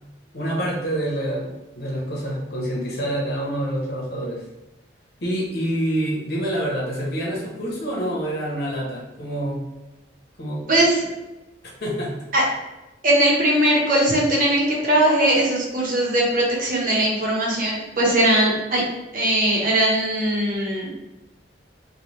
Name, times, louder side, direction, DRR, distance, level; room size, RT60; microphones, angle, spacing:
voice 1, 0.3-4.4 5.2-9.6 10.4-10.6 11.8-12.2, right 1 dB, 60° left, -3 dB, 1.0 m, -27 dB
voice 2, 10.7-11.1 12.3-12.4 13.0-18.8 19.1-20.9, right 1 dB, 50° right, -4 dB, 0.9 m, -20 dB
3.3 x 2.3 x 3.0 m, 1.0 s
head